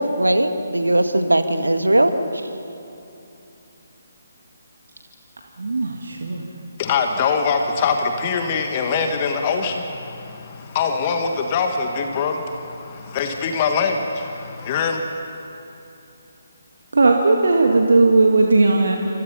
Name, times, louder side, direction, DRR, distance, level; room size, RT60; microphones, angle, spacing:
voice 1, 0.0-2.5, right 1 dB, 80° right, 8 dB, 1.8 m, -19 dB
voice 2, 5.6-6.5 16.9-19.0, right 3 dB, 60° right, 2 dB, 2.0 m, -17 dB
voice 3, 6.8-15.0, left 5 dB, 30° left, 5 dB, 1.7 m, -23 dB
28.0 x 26.0 x 5.7 m, 2.8 s
figure-of-eight pair, 140°, 0 cm